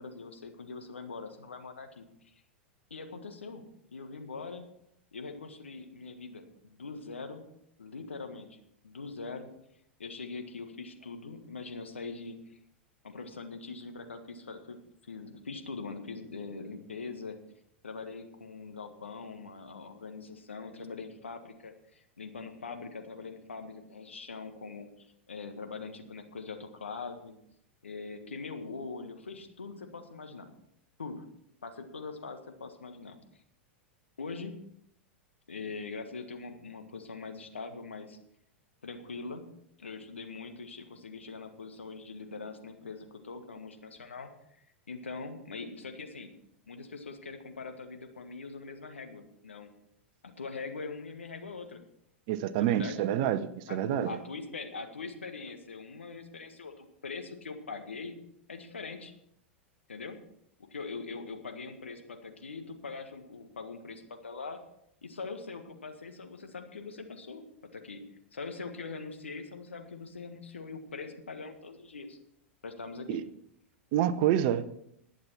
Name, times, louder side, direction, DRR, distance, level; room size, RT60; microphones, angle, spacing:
voice 1, 0.0-2.3 2.9-3.6 3.9-4.7 5.1-7.4 7.8-8.6 8.8-9.5 10.0-12.4 13.0-14.8 15.0-17.4 17.8-27.4 27.8-30.5 31.0-31.2 31.6-33.2 34.2-34.5 35.5-38.2 38.8-39.5 39.8-44.3 44.6-46.3 46.7-49.7 50.2-51.8 52.6-53.0 53.7-58.1 58.5-59.1 59.9-60.2 60.7-64.6 65.0-67.4 67.7-68.0 68.3-72.2 72.6-73.2, left 4 dB, 75° left, 1.6 m, -42 dB
voice 2, 52.3-54.2 73.1-73.3 73.9-74.7, right 11 dB, 45° right, 0.8 m, -28 dB
20.0 x 7.3 x 4.4 m
figure-of-eight pair, 90°, 7 cm